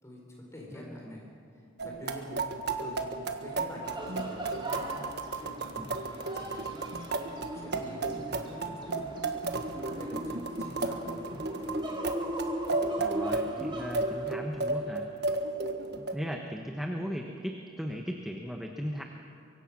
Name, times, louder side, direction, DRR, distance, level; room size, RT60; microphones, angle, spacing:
voice 1, 0.0-1.3 1.5-7.0 7.5-9.2 9.7-11.7, left 1 dB, 15° left, -2 dB, 4.5 m, -47 dB
voice 2, 0.7-1.2 5.8-5.9 8.7-8.8 13.0-15.1 16.0-19.0, equal, ahead, 2 dB, 1.2 m, -37 dB
sound 1, 1.8-16.1, right 3 dB, 55° right, 1.5 m, -34 dB
sound 2, 3.8-14.4, equal, 25° right, 2.6 m, -39 dB
24.5 x 23.0 x 6.2 m, 2.5 s
head